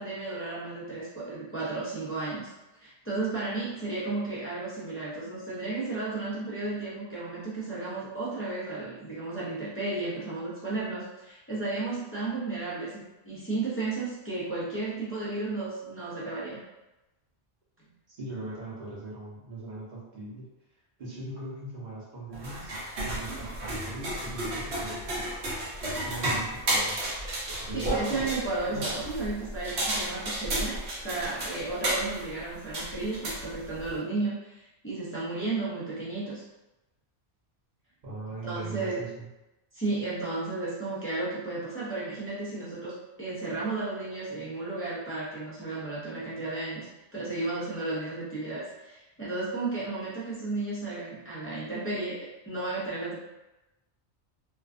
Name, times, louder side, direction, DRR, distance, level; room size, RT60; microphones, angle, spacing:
voice 1, 0.0-2.5 2.8-16.6 27.7-30.8 31.0-36.4 38.4-39.0 39.7-46.9 47.1-53.2, right 3 dB, 20° left, -9 dB, 0.4 m, -33 dB
voice 2, 18.1-20.5 21.0-25.3 26.0-27.0 27.7-28.3 38.0-39.3, right 2 dB, 45° right, -7 dB, 0.8 m, -40 dB
sound 1, 22.3-34.0, right 1 dB, 65° right, 1.0 m, -32 dB
2.4 x 2.3 x 2.4 m, 1.0 s
omnidirectional pair, 1.2 m